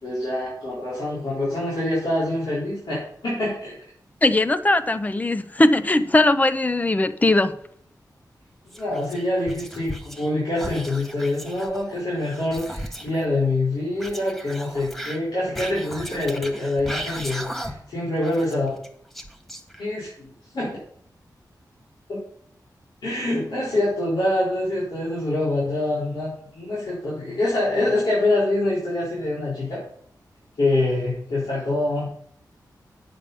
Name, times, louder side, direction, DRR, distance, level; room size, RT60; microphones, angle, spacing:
voice 1, 0.0-3.7 8.7-18.7 19.8-20.7 22.1-22.2 23.0-29.8 30.6-32.1, left 2 dB, 90° left, 4.3 m, -25 dB
voice 2, 4.2-7.5, left 2 dB, 20° left, 0.6 m, -19 dB
Whispering, 8.7-10.3 10.6-13.2 14.0-18.0 18.2-20.0, equal, 5° left, 1.0 m, -36 dB
9.1 x 6.9 x 5.6 m
wide cardioid pair, 110°, 7 cm